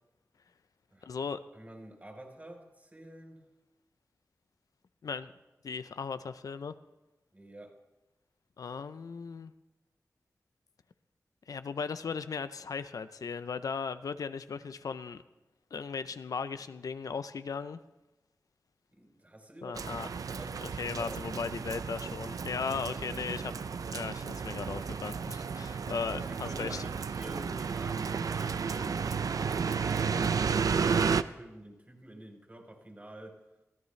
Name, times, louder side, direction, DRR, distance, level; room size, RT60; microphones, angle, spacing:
voice 1, 1.0-1.4 5.0-5.3 5.6-6.8 8.6-9.5 11.5-15.2 15.7-17.8 19.6-20.1 20.8-23.5 23.9-26.8, left 5 dB, 85° left, 11 dB, 0.5 m, -37 dB
voice 2, 1.5-3.4 7.3-7.7 18.9-19.9 20.3-21.3 26.1-33.4, right 1 dB, 30° right, 1 dB, 3.5 m, -48 dB
sound 1, 19.7-31.2, right 6 dB, 85° right, 0.4 m, -32 dB
22.5 x 14.5 x 3.2 m, 1.1 s
wide cardioid pair, 70°, 6 cm